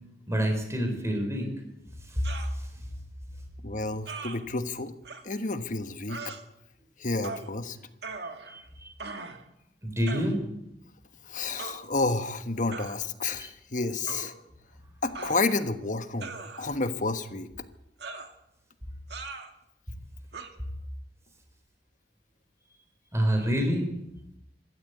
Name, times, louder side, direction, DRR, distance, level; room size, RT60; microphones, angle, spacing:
voice 1, 0.3-1.5 8.5-9.1 9.8-10.3 13.4-13.5 23.1-23.8, equal, 15° right, 4 dB, 4.3 m, -27 dB
sound 1, 2.2-2.5 4.1-4.4 5.1-5.2 6.1-6.4 7.2-7.5 8.0-8.6 9.0-9.4 10.1-10.3 11.6-11.8 12.7-13.0 14.1-14.3 15.2-15.7 16.2-16.8 18.0-18.3 19.1-19.5 20.3-20.5, right 3 dB, 65° right, 2.1 m, -39 dB
voice 2, 3.6-4.9 5.2-6.3 7.0-7.8 11.2-14.3 15.0-16.3 16.6-17.5, left 3 dB, 45° left, 10 dB, 1.3 m, -30 dB
25.5 x 13.0 x 8.2 m, 0.84 s
head